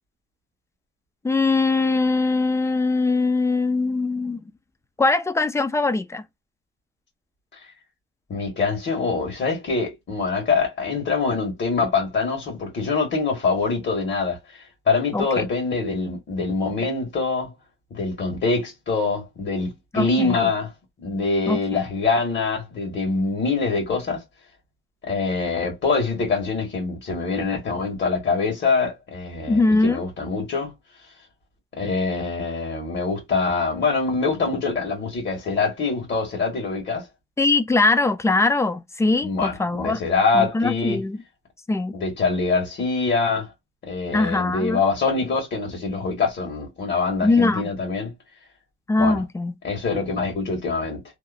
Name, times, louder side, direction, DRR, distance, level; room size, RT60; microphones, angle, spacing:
voice 1, 1.2-4.4 5.0-6.2 15.1-15.4 19.9-20.4 21.5-21.8 29.5-30.0 37.4-40.0 40.3-41.2 41.7-41.9 44.1-44.8 47.2-47.7 48.9-49.5, left 3 dB, 15° left, 0.4 m, -21 dB
voice 2, 8.3-17.5 17.9-20.7 21.0-24.2 25.1-30.7 31.8-37.0 39.2-41.0 41.9-43.5 43.9-48.1 49.0-49.2 49.6-51.0, left 4 dB, 65° left, 1.4 m, -24 dB
2.9 x 2.0 x 2.4 m
wide cardioid pair, 120°, 21 cm